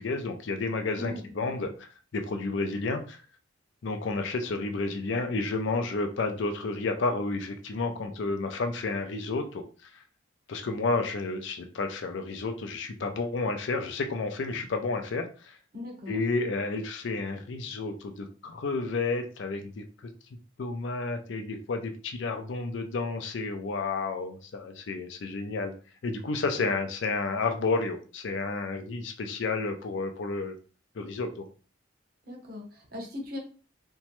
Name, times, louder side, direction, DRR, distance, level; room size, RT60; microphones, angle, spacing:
voice 1, 0.0-3.2 3.8-10.0 10.5-15.6 16.1-20.1 20.6-25.7 26.0-30.6 31.0-31.5, left 3 dB, 65° left, 6 dB, 0.4 m, -31 dB
voice 2, 1.0-1.5 15.7-16.2 26.5-26.6 32.3-33.4, left 1 dB, 45° right, 1 dB, 0.8 m, -39 dB
2.9 x 2.2 x 2.9 m, 0.38 s
head